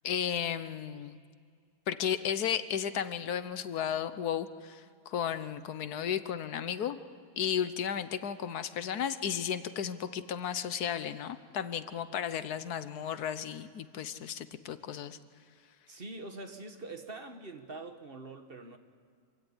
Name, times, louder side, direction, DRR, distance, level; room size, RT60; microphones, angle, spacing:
voice 1, 0.0-1.2 1.9-7.0 7.4-15.2, left 8 dB, 75° left, 13 dB, 1.4 m, -34 dB
voice 2, 15.9-18.8, right 2 dB, 40° right, 7 dB, 1.5 m, -44 dB
26.0 x 16.5 x 9.9 m, 2.2 s
omnidirectional pair, 1.7 m